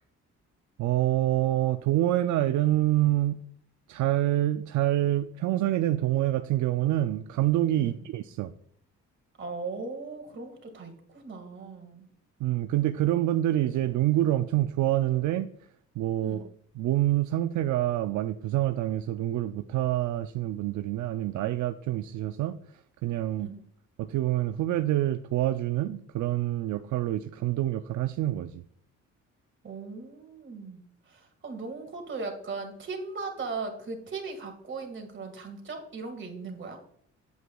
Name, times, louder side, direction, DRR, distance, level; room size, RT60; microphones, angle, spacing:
voice 1, 0.8-3.4 3.9-8.5 12.4-15.5 16.0-16.4 16.8-22.6 23.0-23.5 24.0-28.6, right 14 dB, 70° right, 9 dB, 0.4 m, -26 dB
voice 2, 9.4-12.1 16.2-16.5 23.4-23.6 29.6-36.8, right 4 dB, 40° right, 4 dB, 2.0 m, -38 dB
8.0 x 7.9 x 2.3 m, 0.68 s
cardioid pair, 90°, 30 cm